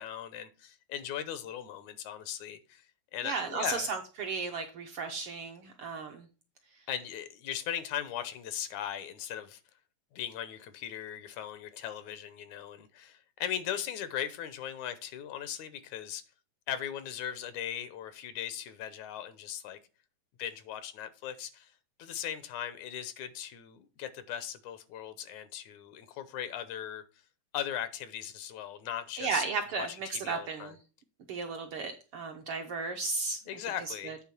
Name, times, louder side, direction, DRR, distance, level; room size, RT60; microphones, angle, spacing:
voice 1, 0.0-2.9 3.1-3.9 6.9-9.6 10.1-16.2 16.7-19.8 20.4-21.7 22.0-27.0 27.5-29.4 29.7-29.9 30.1-30.8 33.5-34.2, left 10 dB, 85° left, 2.2 m, -38 dB
voice 2, 3.2-6.3 29.2-30.8 31.3-33.4 33.9-34.2, right 4 dB, 70° right, 1.3 m, -34 dB
8.9 x 3.6 x 5.9 m
omnidirectional pair, 3.3 m